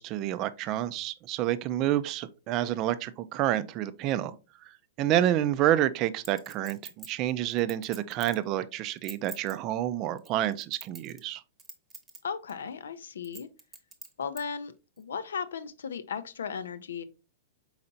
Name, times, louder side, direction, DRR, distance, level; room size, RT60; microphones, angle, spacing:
voice 1, 0.0-4.3 5.0-11.4, right 12 dB, 40° right, 0.4 m, -28 dB
Chink clink, 6.2-8.4 8.9-9.5 10.2-11.3 11.6-12.2 12.5-12.6 13.2-14.4 15.0-15.1, right 4 dB, 20° right, 0.9 m, -45 dB
voice 2, 12.2-13.5 14.2-17.0, left 6 dB, 85° left, 0.4 m, -36 dB
4.4 x 4.0 x 2.6 m
hypercardioid pair, 125°, 0 cm